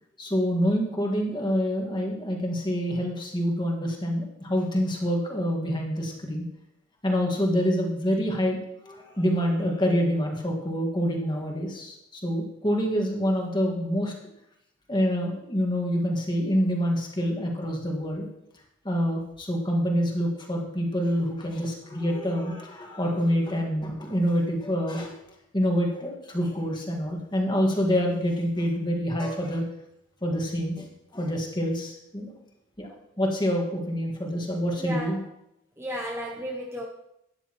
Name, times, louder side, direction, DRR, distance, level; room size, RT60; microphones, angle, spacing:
voice 1, 0.2-6.4 7.0-8.6 8.8-14.1 14.9-18.3 18.8-25.1 25.5-29.6 30.2-30.9 31.1-32.3 32.8-32.9 33.2-35.2, equal, 20° left, 1 dB, 1.7 m, -26 dB
voice 2, 34.8-35.3 35.8-36.9, equal, 10° right, -1 dB, 0.7 m, -34 dB
12.0 x 9.8 x 3.0 m, 0.82 s
head